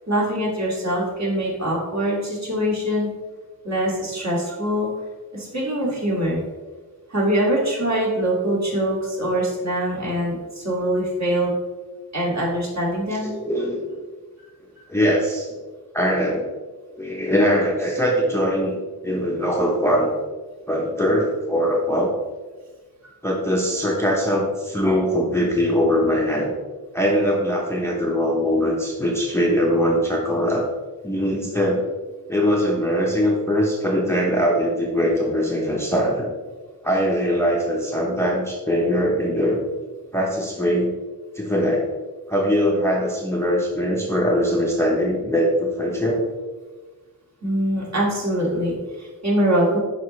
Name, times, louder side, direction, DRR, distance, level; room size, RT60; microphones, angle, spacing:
voice 1, 0.1-3.1 3.6-4.9 5.3-6.4 7.1-11.5 12.1-13.3 47.4-49.8, right 1 dB, 45° right, -5 dB, 2.3 m, -23 dB
voice 2, 13.2-14.0 14.9-15.6 15.9-16.5 17.0-20.1 20.7-22.1 23.2-26.5 26.9-30.6 31.0-31.8 32.3-36.3 36.8-39.6 40.1-40.9 41.3-41.8 42.3-46.3, equal, 5° left, -2 dB, 0.8 m, -21 dB
11.0 x 4.3 x 3.2 m, 1.4 s
wide cardioid pair, 130°, 38 cm